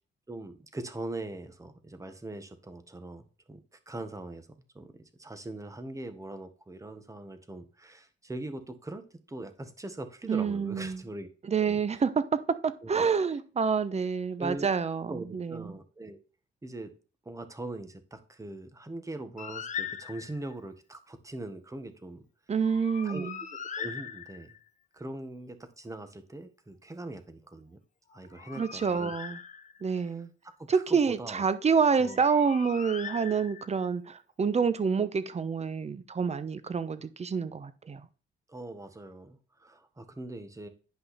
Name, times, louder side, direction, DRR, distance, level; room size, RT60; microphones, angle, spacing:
voice 1, 0.3-4.5 4.7-4.9 5.2-11.3 11.6-12.0 12.8-13.1 14.4-14.7 15.1-16.2 16.6-16.9 17.2-22.2 23.0-23.3 23.8-24.5 24.9-27.8 28.1-29.1 29.9-30.2 30.6-31.4 32.0-32.2 38.5-40.7, right 2 dB, 15° right, 9 dB, 1.5 m, -41 dB
voice 2, 10.3-11.0 11.5-15.6 22.5-23.3 28.6-29.4 29.8-30.3 30.7-38.0, right 6 dB, 35° right, 13 dB, 1.0 m, -28 dB
Bird, 19.4-20.5 22.6-24.7 28.1-30.0 32.0-33.9, left 7 dB, 40° left, 0.9 m, -41 dB
10.5 x 5.6 x 4.3 m, 0.36 s
cardioid pair, 90°, 20 cm